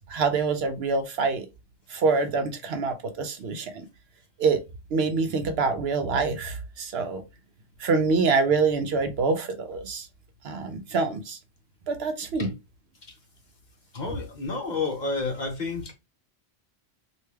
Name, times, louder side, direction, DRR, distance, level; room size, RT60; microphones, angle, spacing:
voice 1, 0.1-1.5 1.9-3.9 4.4-4.6 4.9-7.2 7.8-10.1 10.4-11.4 11.9-12.5, right 4 dB, 65° right, 0.8 m, -25 dB
voice 2, 13.9-15.9, left 3 dB, 45° left, 0.9 m, -30 dB
3.2 x 2.5 x 3.2 m
omnidirectional pair, 1.2 m